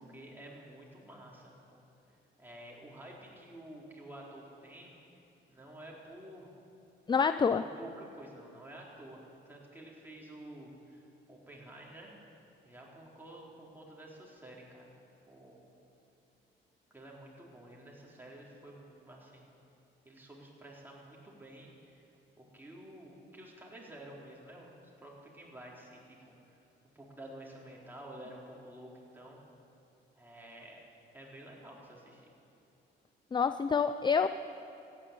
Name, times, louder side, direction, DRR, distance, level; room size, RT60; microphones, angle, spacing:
voice 1, 0.0-1.8 2.4-4.9 5.5-6.5 7.6-11.0 11.3-12.1 12.6-15.0 15.3-15.7 16.9-19.5 20.0-22.1 22.4-24.7 25.0-26.6 26.9-29.4 30.2-30.8 31.1-32.3, right 1 dB, 10° right, -3 dB, 4.1 m, -50 dB
voice 2, 7.1-7.6 33.3-34.3, left 6 dB, 25° left, 11 dB, 0.4 m, -27 dB
15.0 x 10.0 x 9.5 m, 2.9 s
cardioid pair, 90°, 20 cm